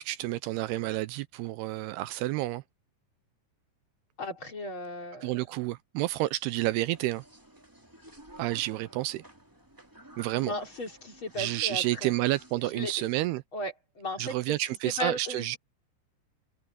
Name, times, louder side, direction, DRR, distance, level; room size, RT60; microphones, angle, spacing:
voice 1, 0.0-2.6 5.2-7.2 8.4-9.2 10.2-10.5 11.4-13.4 14.2-15.6, right 17 dB, 80° right, 2.5 m, -30 dB
voice 2, 4.2-5.4 10.4-12.1 12.6-12.9 13.5-14.6 14.8-15.6, left 1 dB, 30° left, 3.9 m, -36 dB
sound 1, 6.9-13.0, right 2 dB, 10° right, 1.5 m, -53 dB
omnidirectional pair, 4.8 m